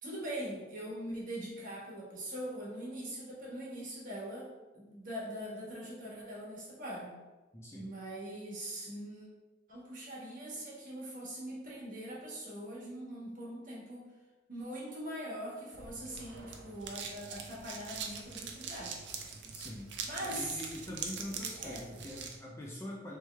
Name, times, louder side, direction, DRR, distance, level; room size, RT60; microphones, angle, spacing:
voice 1, 0.0-4.5 4.7-7.1 7.7-9.3 9.7-14.0 14.5-19.0 20.0-20.6 21.5-21.8, right 1 dB, 45° right, -5 dB, 1.2 m, -42 dB
voice 2, 7.5-7.9 19.4-19.9 20.2-23.2, left 1 dB, 15° left, -4 dB, 0.4 m, -44 dB
sound 1, 15.7-22.4, right 5 dB, 65° right, 0.5 m, -43 dB
3.4 x 3.1 x 3.1 m, 1.2 s
head